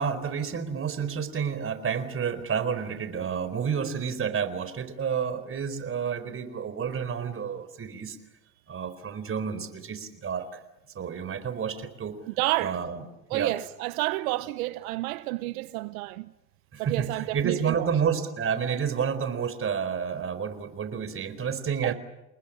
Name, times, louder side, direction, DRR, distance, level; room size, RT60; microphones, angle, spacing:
voice 1, 0.0-8.2 8.7-10.6 10.9-12.2 12.6-13.0 13.3-13.5 16.7-21.9, right 7 dB, 30° right, 4.3 m, -30 dB
voice 2, 12.3-12.8 13.3-16.3 16.8-17.9 21.8-21.9, right 19 dB, 80° right, 1.0 m, -30 dB
30.0 x 19.5 x 10.0 m
supercardioid pair, 110°, 41 cm